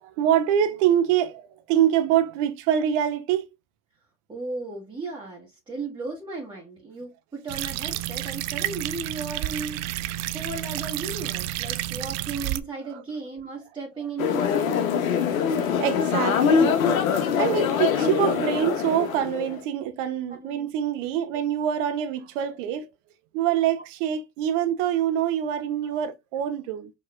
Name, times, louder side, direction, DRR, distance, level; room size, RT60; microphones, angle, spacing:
voice 1, 0.0-3.5 12.9-13.0 15.3-15.5 15.8-16.8 17.4-22.9 23.3-26.9, right 10 dB, 65° right, 0.8 m, -25 dB
voice 2, 4.3-9.8 10.3-14.9 20.3-20.7 25.8-26.0, right 3 dB, 10° right, 1.4 m, -35 dB
sound 1, 7.5-12.6, right 16 dB, 40° right, 0.4 m, -30 dB
sound 2, 14.2-19.6, left 7 dB, 85° left, 0.8 m, -23 dB
4.8 x 3.0 x 2.3 m
hypercardioid pair, 90°, 40 cm